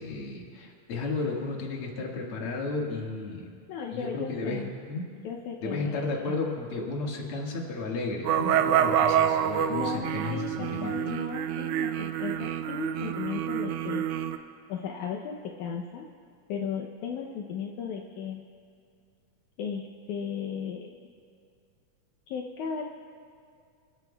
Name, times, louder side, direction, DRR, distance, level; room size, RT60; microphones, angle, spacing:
voice 1, 0.0-3.5 3.9-5.1 5.6-11.0, left 3 dB, 50° left, -2 dB, 2.4 m, -33 dB
voice 2, 3.7-4.7 5.2-6.4 9.7-14.0 14.7-16.0 16.5-18.4 19.6-21.0 22.3-22.8, left 7 dB, 80° left, 0 dB, 2.1 m, -36 dB
sound 1, 8.3-14.4, right 9 dB, 80° right, 2.0 m, -27 dB
27.5 x 13.5 x 2.3 m, 2.4 s
omnidirectional pair, 3.5 m